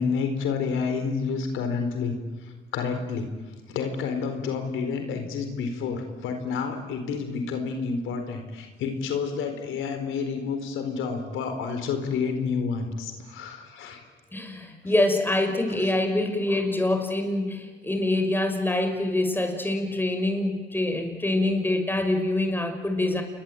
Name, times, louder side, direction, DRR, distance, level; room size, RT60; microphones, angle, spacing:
voice 1, 0.0-2.1 2.4-3.3 3.7-14.0 14.8-15.1 15.7-15.9, left 5 dB, 90° left, 6 dB, 4.3 m, -29 dB
voice 2, 14.3-23.2, left 1 dB, 10° left, 6 dB, 5.9 m, -25 dB
28.5 x 22.5 x 9.3 m, 1.4 s
cardioid pair, 90°, 20 cm